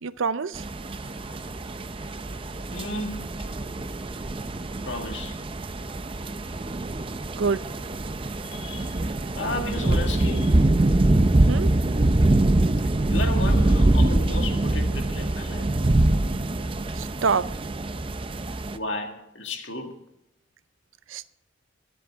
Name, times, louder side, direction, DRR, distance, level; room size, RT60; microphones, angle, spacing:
voice 1, 0.0-0.6 7.4-7.6 11.5-11.7 17.0-17.5 21.1-21.3, right 5 dB, 75° right, 0.5 m, -26 dB
sound 1, 0.5-18.8, right 2 dB, 25° right, 0.5 m, -24 dB
sound 2, 0.9-9.9, right 2 dB, 90° right, 2.1 m, -45 dB
voice 2, 2.7-3.5 4.9-5.4 8.4-9.0 9.4-10.6 13.1-15.7 18.7-20.0, left 2 dB, 60° left, 1.9 m, -33 dB
23.0 x 7.9 x 3.6 m
head